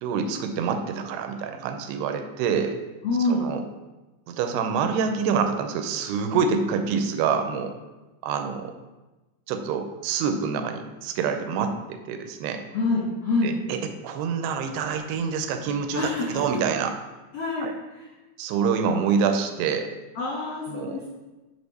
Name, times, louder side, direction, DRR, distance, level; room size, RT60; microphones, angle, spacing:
voice 1, 0.0-2.8 3.2-3.6 4.3-7.7 8.2-8.7 9.5-12.6 13.4-16.9 17.6-17.7 18.4-19.9 20.7-21.0, right 6 dB, 85° right, 7 dB, 2.6 m, -26 dB
voice 2, 3.0-3.5 12.7-13.5 15.9-16.4 17.3-17.7 17.9-18.1 20.1-21.1, left 3 dB, 75° left, -6 dB, 1.4 m, -26 dB
6.5 x 3.5 x 5.3 m, 1.1 s
omnidirectional pair, 4.5 m